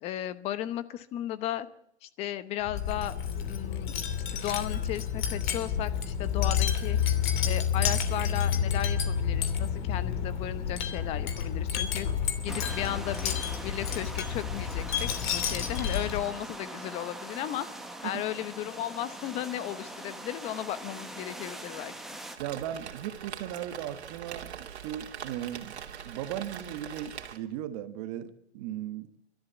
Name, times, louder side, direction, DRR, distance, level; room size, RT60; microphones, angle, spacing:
voice 1, 0.0-1.7 2.0-3.1 3.4-3.9 4.3-7.0 7.4-12.1 12.4-13.4 13.6-17.7 18.0-21.9, left 12 dB, 20° left, 14 dB, 0.9 m, -35 dB
Wind chime, 2.6-16.4, left 8 dB, 45° left, 2.9 m, -30 dB
sound 1, 12.5-22.4, right 1 dB, ahead, 1.1 m, -42 dB
voice 2, 22.4-25.8 26.0-29.1, right 11 dB, 30° right, 11 dB, 1.3 m, -37 dB
Rain, 22.4-27.4, right 8 dB, 70° right, 2.8 m, -42 dB
30.0 x 13.5 x 8.1 m, 0.79 s
hypercardioid pair, 155°, 34 cm